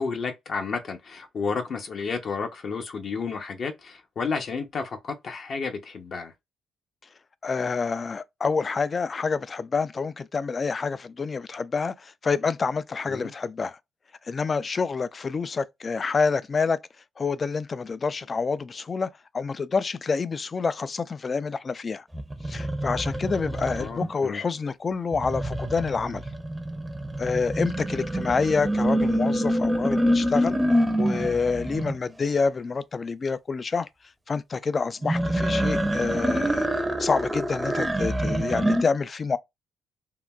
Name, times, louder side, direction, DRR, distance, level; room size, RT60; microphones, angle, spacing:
voice 1, 0.0-6.3 13.1-13.3 23.7-24.4, left 5 dB, 55° left, 0.7 m, -31 dB
voice 2, 7.4-13.8 14.3-16.8 17.2-19.1 19.3-22.0 22.5-26.2 27.2-30.6 31.0-33.9 34.3-36.7 37.0-39.4, left 5 dB, 35° left, 0.3 m, -27 dB
sound 1, 22.1-24.1 25.1-31.9 35.0-38.8, equal, 10° right, 0.6 m, -26 dB
3.7 x 2.2 x 2.2 m
cardioid pair, 90°, 0 cm